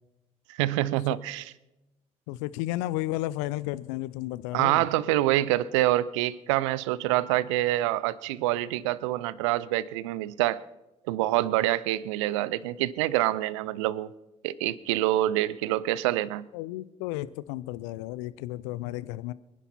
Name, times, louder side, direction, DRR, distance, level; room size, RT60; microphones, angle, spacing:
voice 1, 0.6-1.5 4.5-10.6 11.1-14.1 14.4-16.5, right 15 dB, 80° right, 20 dB, 0.5 m, -26 dB
voice 2, 2.3-4.8 16.5-19.3, left 16 dB, 75° left, 19 dB, 0.5 m, -33 dB
24.0 x 11.0 x 4.2 m, 0.98 s
hypercardioid pair, 45°, 15 cm